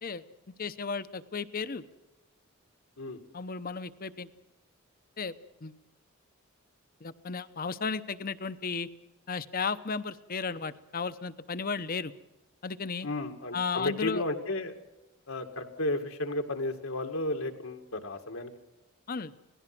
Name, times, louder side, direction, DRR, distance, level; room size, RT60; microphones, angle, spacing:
voice 1, 0.6-1.8 3.3-4.3 5.2-5.3 5.6-5.7 7.0-8.9 9.3-12.1 12.6-13.1 13.5-14.2 19.1-19.3, left 5 dB, 45° left, 14 dB, 0.9 m, -34 dB
voice 2, 13.0-14.7 15.3-18.5, left 2 dB, 80° left, 4 dB, 2.2 m, -33 dB
27.0 x 18.0 x 6.1 m, 1.0 s
head